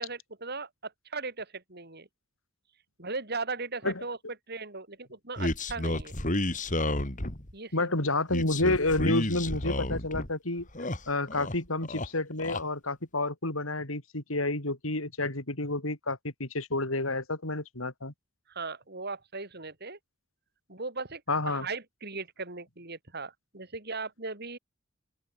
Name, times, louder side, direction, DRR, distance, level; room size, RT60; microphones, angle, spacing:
voice 1, 0.0-2.1 3.0-4.2 4.5-6.1 7.5-7.9 18.5-20.0 20.7-24.6, right 3 dB, 55° right, 7.0 m, -38 dB
sound 1, 5.4-7.5 8.3-10.3 10.6-11.6 11.8-12.6, left 1 dB, 40° left, 3.8 m, -31 dB
voice 2, 7.7-10.7 11.1-18.1 21.3-21.7, left 2 dB, 90° left, 5.0 m, -29 dB
open air
head